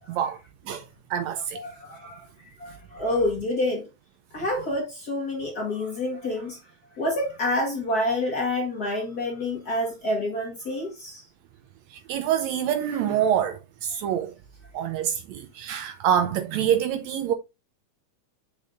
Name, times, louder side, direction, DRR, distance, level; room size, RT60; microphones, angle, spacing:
voice 1, 0.1-0.4 0.7-0.8 1.1-1.6 11.9-14.3 14.7-17.3, right 9 dB, 80° right, 1.7 m, -26 dB
voice 2, 1.5-3.9 4.3-6.6 7.0-11.2, left 1 dB, 45° left, 1.4 m, -28 dB
7.4 x 5.4 x 2.5 m
omnidirectional pair, 3.5 m